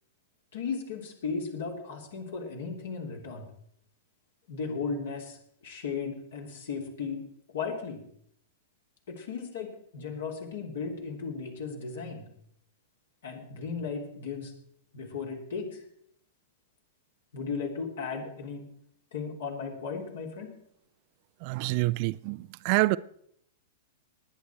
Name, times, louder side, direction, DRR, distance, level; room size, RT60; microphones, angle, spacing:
voice 1, 0.5-3.5 4.5-5.4 5.6-7.2 7.5-8.0 9.1-12.2 13.2-14.5 14.9-15.8 17.3-18.6 19.1-20.5, left 5 dB, 65° left, 3.2 m, -36 dB
voice 2, 21.4-23.0, right 22 dB, 45° right, 0.4 m, -27 dB
19.5 x 9.6 x 4.5 m
figure-of-eight pair, 100°, 0 cm